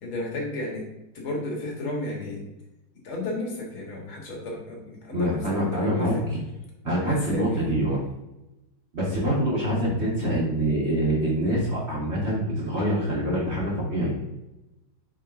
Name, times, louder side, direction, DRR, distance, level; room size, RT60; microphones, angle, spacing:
voice 1, 0.0-0.9 1.1-2.4 3.0-6.2 7.0-7.7 9.2-9.4, left 2 dB, 80° left, -1 dB, 2.4 m, -33 dB
voice 2, 5.1-6.4 6.8-8.0 8.9-14.1, right 1 dB, 35° right, -5 dB, 1.9 m, -25 dB
9.5 x 4.6 x 2.6 m, 0.96 s
omnidirectional pair, 2.3 m